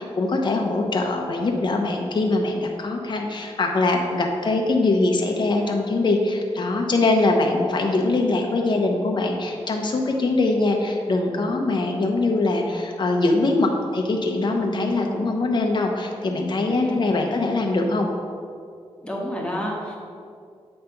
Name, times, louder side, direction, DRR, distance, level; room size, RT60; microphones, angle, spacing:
voice 1, 0.0-18.1, left 2 dB, 45° left, 2 dB, 0.9 m, -22 dB
voice 2, 16.7-17.0 19.0-20.0, equal, 10° left, -3 dB, 1.3 m, -28 dB
7.8 x 3.3 x 5.7 m, 2.3 s
wide cardioid pair, 120°, 11 cm